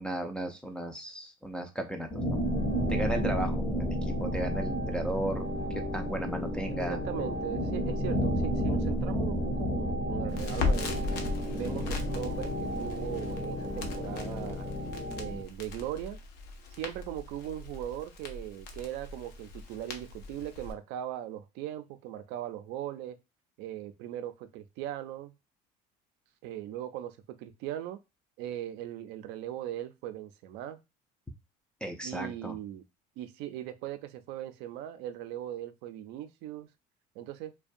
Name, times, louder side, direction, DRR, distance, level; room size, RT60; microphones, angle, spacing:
voice 1, 0.0-2.4 2.9-5.5 5.9-7.0 31.8-32.6, right 1 dB, 5° left, 3 dB, 0.3 m, -35 dB
sound 1, 2.1-15.4, equal, 30° left, 0.7 m, -32 dB
voice 2, 6.7-11.0 11.5-14.7 15.2-16.2 16.8-23.2 23.6-25.3 26.4-28.0 28.4-30.8 32.0-32.9 33.2-36.7 37.2-37.5, right 12 dB, 75° right, 11 dB, 0.4 m, -39 dB
Crackle, 10.3-20.7, left 3 dB, 80° left, 0.6 m, -38 dB
2.4 x 2.2 x 2.5 m, 0.25 s
cardioid pair, 115°, 17 cm